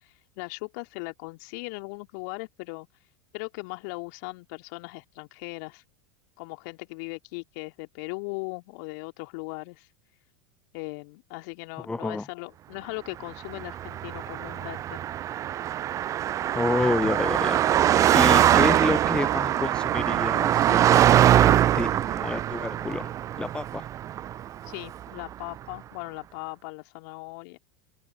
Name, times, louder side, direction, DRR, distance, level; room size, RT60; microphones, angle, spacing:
voice 1, 0.0-2.9 3.3-5.8 6.4-9.9 10.7-15.0 16.8-17.3 24.6-27.6, left 31 dB, 55° left, 2.5 m, -38 dB
voice 2, 11.8-12.3 16.5-17.6 18.1-20.8 21.4-23.1 23.4-23.9, left 3 dB, 10° left, 0.7 m, -29 dB
Car passing by, 13.5-25.0, right 11 dB, 30° right, 0.4 m, -23 dB
open air
figure-of-eight pair, 85°, 11 cm